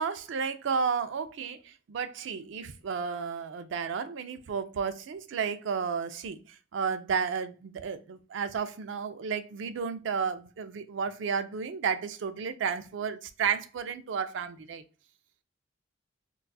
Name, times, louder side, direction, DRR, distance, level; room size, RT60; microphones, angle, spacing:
voice 1, 0.0-14.8, right 6 dB, 70° right, 0.4 m, -32 dB
3.9 x 2.3 x 2.3 m
head